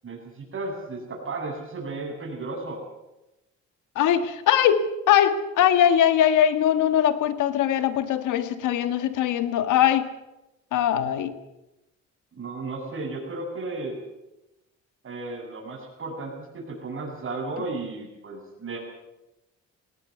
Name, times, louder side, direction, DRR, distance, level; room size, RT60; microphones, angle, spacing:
voice 1, 0.0-2.8 12.3-14.0 15.0-18.8, right 3 dB, 45° right, 0 dB, 8.0 m, -34 dB
voice 2, 3.9-10.1 10.7-11.3, left 10 dB, 85° left, 11 dB, 1.7 m, -21 dB
19.0 x 18.0 x 8.1 m, 0.94 s
cardioid pair, 90°, 30 cm